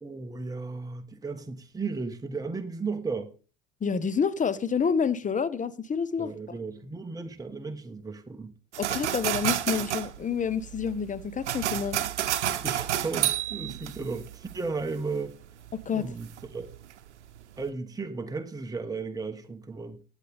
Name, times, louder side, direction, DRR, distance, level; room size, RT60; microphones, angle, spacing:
voice 1, 0.0-3.3 6.2-8.5 12.6-15.3 15.9-16.7 17.6-20.0, right 4 dB, 10° right, 1.2 m, -35 dB
voice 2, 3.8-6.3 8.8-12.0 15.7-16.1, left 6 dB, 20° left, 0.9 m, -28 dB
sound 1, 8.7-17.0 17.3-17.7, right 11 dB, 85° right, 0.8 m, -31 dB
16.5 x 8.3 x 3.5 m
hypercardioid pair, 75°, 34 cm